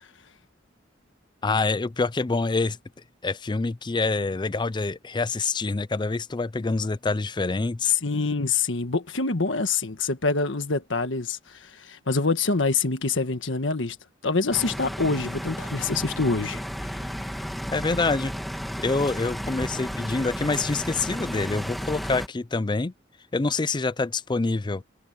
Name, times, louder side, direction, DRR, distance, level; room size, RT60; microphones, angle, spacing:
voice 1, 1.4-2.8 3.2-7.9 17.7-18.3 18.8-22.9 23.3-24.8, left 3 dB, 25° left, 0.5 m, -26 dB
voice 2, 8.0-14.0 14.2-16.6 17.0-17.1, left 3 dB, 75° left, 1.5 m, -26 dB
sound 1, 14.5-22.3, equal, ahead, 2.3 m, -33 dB
head